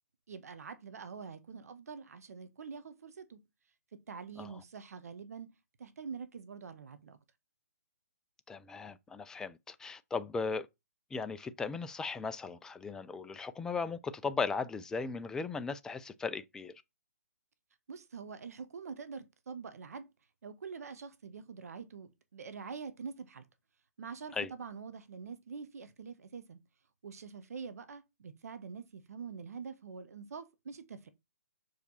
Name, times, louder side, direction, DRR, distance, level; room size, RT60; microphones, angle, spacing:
voice 1, 0.3-3.4 4.1-5.5 5.8-7.2 17.9-20.1 20.4-23.4 24.0-26.6 27.0-31.1, right 5 dB, 65° right, 1.5 m, -45 dB
voice 2, 8.5-10.7 11.1-16.7 24.3-24.5, left 4 dB, 5° left, 0.5 m, -37 dB
6.6 x 5.0 x 4.2 m
figure-of-eight pair, 140°, 9 cm